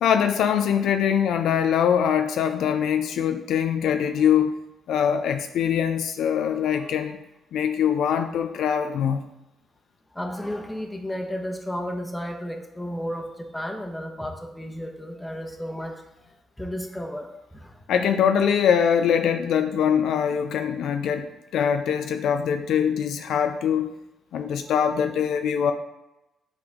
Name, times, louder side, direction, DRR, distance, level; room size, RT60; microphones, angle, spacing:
voice 1, 0.0-4.6 4.9-7.2 7.5-9.2 17.9-23.9 24.3-25.7, left 8 dB, 75° left, 7 dB, 0.4 m, -23 dB
voice 2, 10.1-17.8 24.6-24.7, equal, 10° left, 2 dB, 1.1 m, -33 dB
7.9 x 3.9 x 3.5 m, 0.93 s
supercardioid pair, 75°, 0 cm